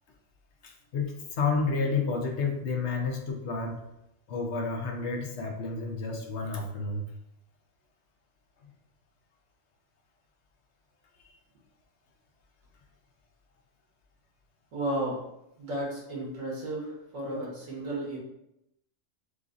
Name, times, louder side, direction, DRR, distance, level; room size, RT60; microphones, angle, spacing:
voice 1, 0.6-3.8 4.3-7.0 11.2-11.3, left 4 dB, 65° left, 1 dB, 1.0 m, -30 dB
voice 2, 14.7-15.2 15.6-18.2, right 1 dB, 85° right, -4 dB, 1.7 m, -33 dB
6.5 x 2.6 x 2.5 m, 0.83 s
omnidirectional pair, 1.3 m